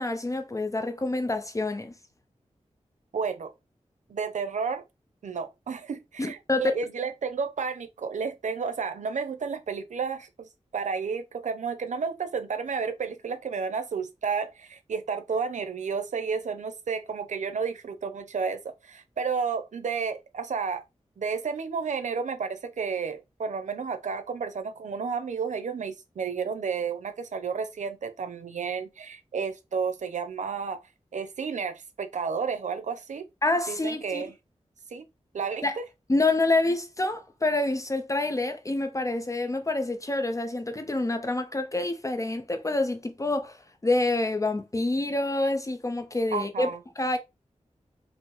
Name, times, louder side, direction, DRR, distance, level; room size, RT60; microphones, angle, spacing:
voice 1, 0.0-1.9 6.2-6.7 33.4-34.3 35.6-35.8 36.1-43.6 43.8-46.7 47.0-47.2, left 2 dB, 25° left, 0.5 m, -27 dB
voice 2, 3.1-3.5 4.1-4.8 5.2-20.8 21.2-30.8 31.1-33.3 33.7-34.3 34.9-35.0 35.3-35.8 46.3-46.8, right 5 dB, 90° right, 0.6 m, -31 dB
5.1 x 2.0 x 4.7 m
wide cardioid pair, 100°, 12 cm